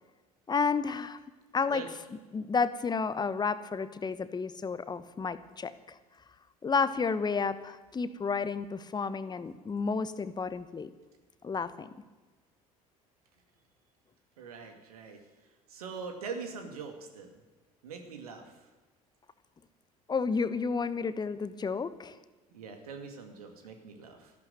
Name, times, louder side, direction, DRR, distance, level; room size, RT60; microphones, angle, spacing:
voice 1, 0.5-1.2 1.5-1.8 2.3-6.0 6.6-10.9 11.4-11.9 20.1-22.2, left 5 dB, 20° left, 14 dB, 1.0 m, -31 dB
voice 2, 14.4-15.2 15.7-17.4 17.8-18.5 22.5-24.3, right 5 dB, 75° right, 5 dB, 2.3 m, -42 dB
14.0 x 12.0 x 8.0 m, 1.2 s
figure-of-eight pair, 60°, 19 cm